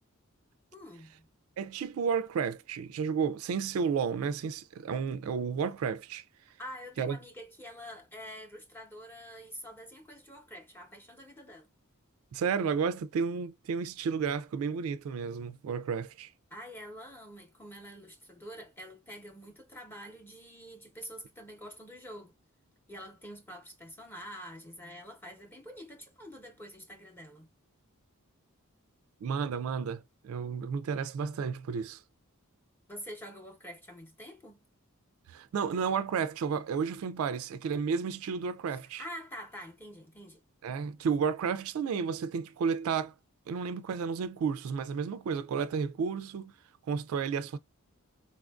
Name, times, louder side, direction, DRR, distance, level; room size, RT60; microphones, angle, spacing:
voice 1, 0.7-1.3 6.6-11.7 16.5-22.3 22.9-27.5 32.9-34.6 38.7-40.4, equal, 10° left, 0.8 m, -46 dB
voice 2, 1.6-6.2 7.0-7.2 12.3-16.3 29.2-32.0 35.3-39.0 40.6-43.1 43.5-46.5 46.9-47.6, right 6 dB, 70° right, 0.3 m, -32 dB
4.1 x 2.5 x 2.2 m
head